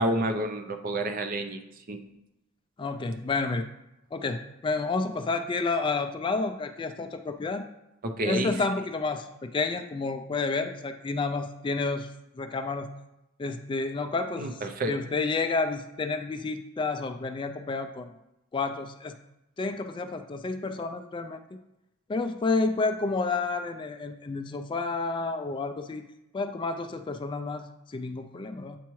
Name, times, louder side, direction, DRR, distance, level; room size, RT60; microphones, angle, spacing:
voice 1, 0.0-1.6 1.9-2.0 8.0-8.6 14.4-15.0, right 1 dB, 45° right, 6 dB, 0.5 m, -29 dB
voice 2, 2.8-3.7 4.1-7.6 8.2-12.1 12.4-12.9 13.4-18.1 18.5-19.1 19.6-21.4 22.1-26.0 26.3-28.8, left 3 dB, 25° left, 7 dB, 0.3 m, -30 dB
8.3 x 4.5 x 3.1 m, 0.88 s
head